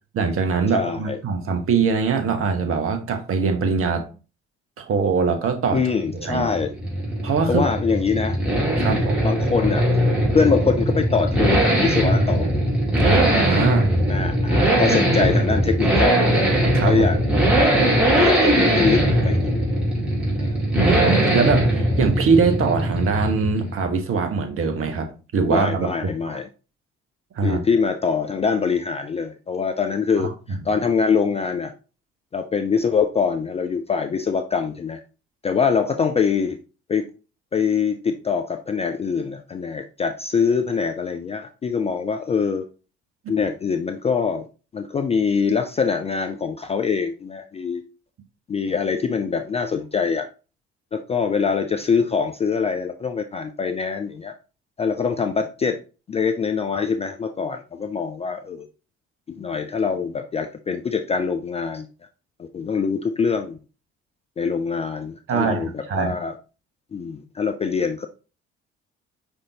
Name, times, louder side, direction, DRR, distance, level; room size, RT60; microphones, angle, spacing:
voice 1, 0.1-4.1 4.8-5.8 6.1-6.5 7.2-7.6 8.8-9.2 13.0-13.9 14.9-15.0 16.7-17.1 20.0-20.1 20.7-26.4 27.4-27.6 65.3-66.2, right 5 dB, 40° right, 7 dB, 0.9 m, -22 dB
voice 2, 0.7-1.2 5.7-6.7 7.5-8.4 8.8-9.9 10.3-12.5 14.1-16.2 16.9-17.2 17.6-17.8 18.1-19.5 20.4-20.5 25.5-26.5 27.4-31.7 32.3-35.0 35.4-36.6 36.9-37.0 37.5-42.7 43.3-44.5 44.7-47.8 48.5-50.3 50.9-54.3 54.8-55.8 56.1-58.7 59.3-61.9 62.4-63.6 64.4-66.3 66.9-68.1, left 5 dB, 20° left, 6 dB, 0.4 m, -24 dB
sound 1, 5.8-23.9, right 1 dB, 5° right, 2.0 m, -20 dB
5.2 x 3.5 x 2.7 m, 0.33 s
figure-of-eight pair, 45°, 33 cm